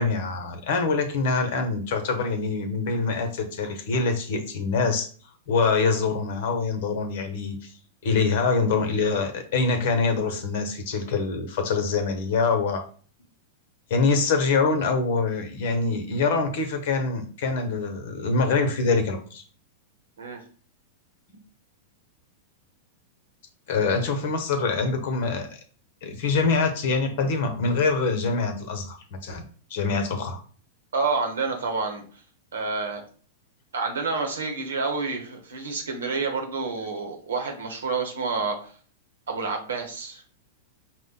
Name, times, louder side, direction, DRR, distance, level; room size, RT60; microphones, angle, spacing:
voice 1, 0.0-5.1 5.5-7.7 8.0-12.8 13.9-19.4 23.7-25.5 26.0-29.4 29.7-30.4, left 4 dB, 60° left, 7 dB, 0.9 m, -25 dB
voice 2, 30.9-32.0 32.5-33.0 33.7-38.7 39.3-40.2, right 4 dB, 80° right, 3 dB, 1.1 m, -28 dB
4.9 x 2.2 x 3.9 m, 0.42 s
hypercardioid pair, 105°, 0 cm